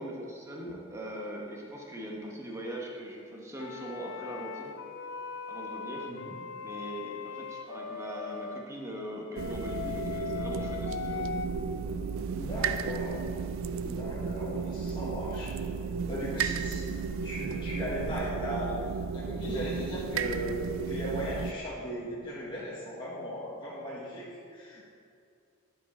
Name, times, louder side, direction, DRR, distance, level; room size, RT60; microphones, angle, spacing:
voice 1, 0.0-4.8 5.5-6.1 6.6-11.2, right 1 dB, 15° right, -2 dB, 1.0 m, -41 dB
sound 1, 3.6-8.6 9.3-11.5, left 6 dB, 75° left, 0.4 m, -39 dB
voice 2, 6.1-6.4 12.3-13.3 13.8-15.5 16.1-16.9 17.2-18.7 19.1-20.6 20.9-24.8, equal, 25° left, -8 dB, 1.2 m, -37 dB
sound 2, 9.4-21.5, right 5 dB, 85° right, 0.3 m, -34 dB
9.9 x 5.0 x 4.2 m, 2.4 s
head